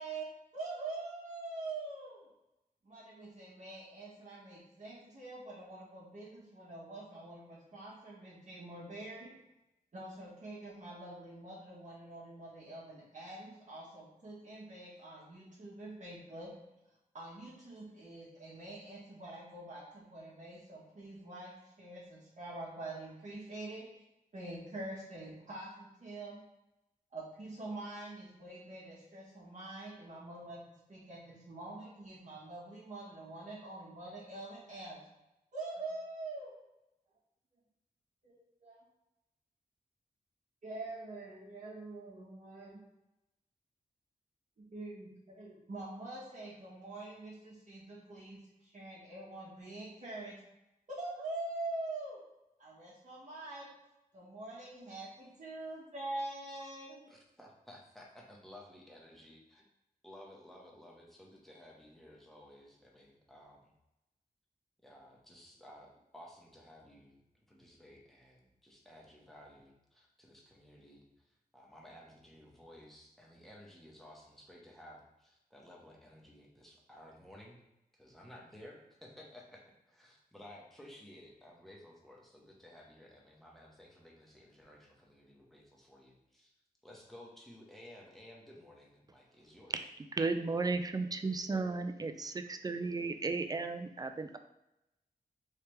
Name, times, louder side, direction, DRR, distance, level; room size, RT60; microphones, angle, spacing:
voice 1, 0.0-2.3 2.8-9.3 9.9-16.6 17.1-24.0 24.3-26.4 27.1-30.6 30.9-35.0 35.5-36.5 38.2-38.8 40.6-42.8 44.6-50.4 51.0-52.2 52.6-53.7 54.1-57.0, right 2 dB, 50° right, -6 dB, 1.0 m, -45 dB
voice 2, 57.1-59.6 60.0-63.7 64.8-67.2 67.5-77.6 77.9-86.5 86.8-89.9, left 1 dB, ahead, -2 dB, 1.0 m, -55 dB
voice 3, 90.1-94.4, right 3 dB, 25° right, 7 dB, 0.3 m, -34 dB
3.3 x 3.2 x 3.0 m, 0.91 s
wide cardioid pair, 75°, 16 cm